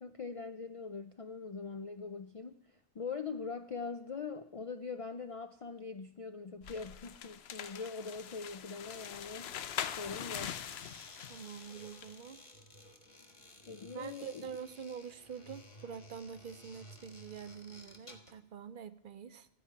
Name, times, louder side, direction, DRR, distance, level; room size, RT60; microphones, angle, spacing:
voice 1, 0.0-9.5 10.0-10.6 13.7-14.5, left 5 dB, 55° left, 9 dB, 0.4 m, -42 dB
sound 1, 6.6-12.2, left 9 dB, 75° left, 0.9 m, -43 dB
sound 2, 10.2-18.4, left 1 dB, 30° left, 1.3 m, -55 dB
voice 2, 11.3-12.4 13.9-19.5, right 7 dB, 60° right, 13 dB, 0.7 m, -46 dB
13.5 x 4.7 x 8.6 m, 0.71 s
omnidirectional pair, 1.1 m